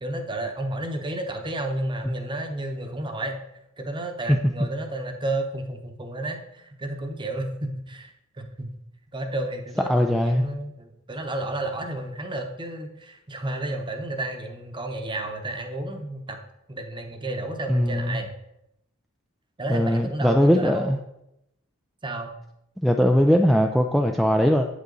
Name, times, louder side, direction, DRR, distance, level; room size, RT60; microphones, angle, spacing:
voice 1, 0.0-3.4 3.8-8.7 9.1-16.4 16.7-18.3 19.6-21.0 22.0-22.3, right 1 dB, 20° right, 5 dB, 0.9 m, -31 dB
voice 2, 9.9-10.5 17.7-18.2 19.7-21.0 22.8-24.7, equal, ahead, 2 dB, 0.4 m, -20 dB
8.3 x 8.0 x 3.9 m, 0.84 s
head